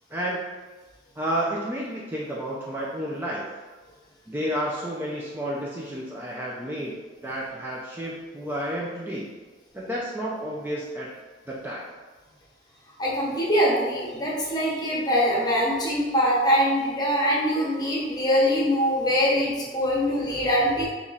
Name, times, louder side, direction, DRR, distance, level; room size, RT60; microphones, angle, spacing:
voice 1, 0.1-0.5 1.2-3.4 4.3-7.0 7.2-9.3 9.7-11.1 11.5-11.8, right 1 dB, 10° right, -4 dB, 0.4 m, -31 dB
voice 2, 13.0-20.8, equal, 25° left, -4 dB, 1.0 m, -23 dB
3.7 x 2.9 x 4.0 m, 1.3 s
head